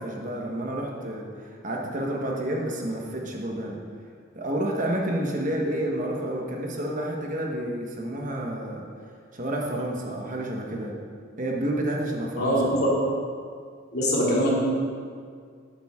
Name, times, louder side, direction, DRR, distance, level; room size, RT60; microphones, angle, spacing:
voice 1, 0.0-3.8 4.3-8.9 9.3-10.9 11.4-12.7, right 1 dB, 40° right, -1 dB, 1.3 m, -30 dB
voice 2, 12.4-12.9 13.9-14.5, equal, 55° left, -5 dB, 2.7 m, -22 dB
12.5 x 8.8 x 3.7 m, 2.1 s
head